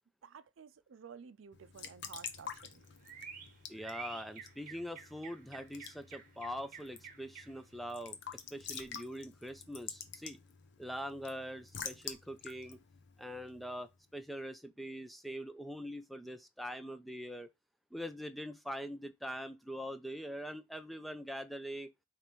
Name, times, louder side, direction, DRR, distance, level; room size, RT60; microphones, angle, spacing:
voice 1, 0.2-2.8, right 6 dB, 75° right, 0.4 m, -53 dB
Raindrop / Drip / Trickle dribble, 1.5-14.0, left 7 dB, 60° left, 0.7 m, -49 dB
sound 1, 2.2-7.8, right 6 dB, 45° right, 1.0 m, -51 dB
voice 2, 3.7-10.4 10.8-12.8 13.2-17.5 17.9-21.9, equal, ahead, 0.3 m, -43 dB
5.0 x 3.2 x 3.0 m
head